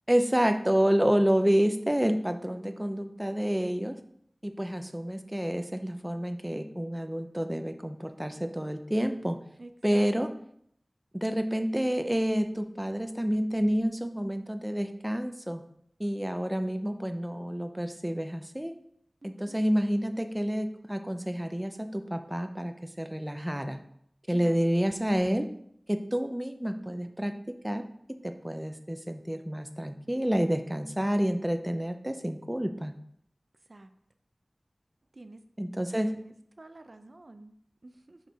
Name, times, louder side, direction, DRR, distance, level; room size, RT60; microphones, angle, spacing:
voice 1, 0.1-4.0 4.4-9.4 9.8-10.3 11.1-15.6 16.0-18.7 19.2-23.8 24.3-25.5 25.9-27.3 27.6-27.9 28.2-32.9 35.6-36.1, equal, 15° right, 7 dB, 0.5 m, -29 dB
voice 2, 9.6-10.1 19.2-19.7 24.3-24.6 33.7-33.9 35.1-35.4 35.9-37.5 37.8-38.2, right 2 dB, 60° right, 8 dB, 0.4 m, -49 dB
5.8 x 4.4 x 4.1 m, 0.70 s
wide cardioid pair, 50°, 0 cm